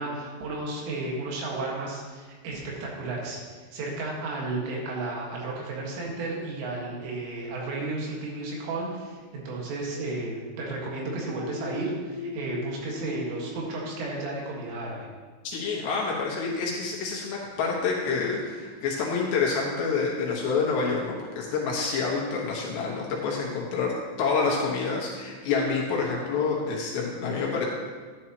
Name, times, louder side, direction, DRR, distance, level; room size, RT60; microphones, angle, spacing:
voice 1, 0.0-3.4 3.7-15.1, right 2 dB, 80° right, -2 dB, 4.3 m, -33 dB
sound 1, 11.4-15.0, left 3 dB, 30° right, 1.4 m, -40 dB
voice 2, 15.4-27.7, left 4 dB, 70° left, -3 dB, 3.3 m, -28 dB
11.5 x 11.0 x 3.0 m, 1.5 s
omnidirectional pair, 5.7 m